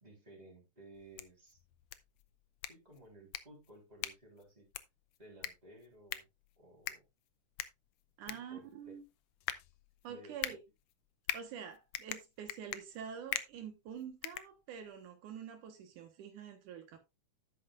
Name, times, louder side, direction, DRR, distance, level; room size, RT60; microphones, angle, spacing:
voice 1, 0.0-1.6 2.7-4.7 5.2-6.2 6.6-7.1 8.2-9.0 10.1-10.6, right 1 dB, 15° right, 3.5 m, -57 dB
sound 1, 0.9-15.1, left 13 dB, 80° left, 1.3 m, -44 dB
voice 2, 8.2-9.0 10.0-10.6 11.3-17.0, right 8 dB, 80° right, 2.8 m, -47 dB
11.0 x 8.7 x 2.5 m
omnidirectional pair, 3.6 m